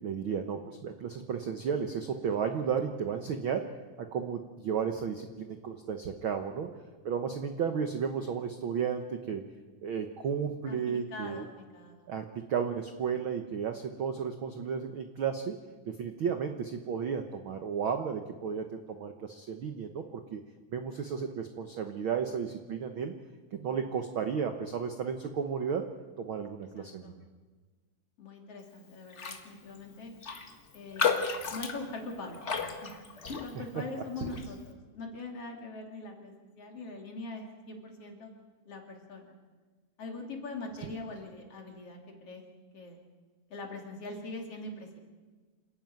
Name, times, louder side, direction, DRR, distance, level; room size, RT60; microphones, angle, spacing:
voice 1, 0.0-3.7 4.0-6.7 7.0-9.4 9.8-11.5 12.1-15.5 15.9-20.4 20.7-23.1 23.5-25.8 26.2-27.1 33.5-33.6 34.2-34.3, right 7 dB, 65° right, 6 dB, 1.2 m, -33 dB
voice 2, 11.1-12.1 26.8-27.2 28.2-30.1 30.7-31.2 31.5-32.9 33.4-38.3 38.7-39.3 40.0-42.4 42.7-43.0 43.5-45.0, left 2 dB, 45° left, 2 dB, 3.5 m, -42 dB
Raindrop, 29.1-29.5 29.7-29.8 30.2-33.8 34.2-34.5, left 6 dB, 70° left, 0.6 m, -33 dB
28.0 x 11.0 x 9.3 m, 1.4 s
omnidirectional pair, 3.8 m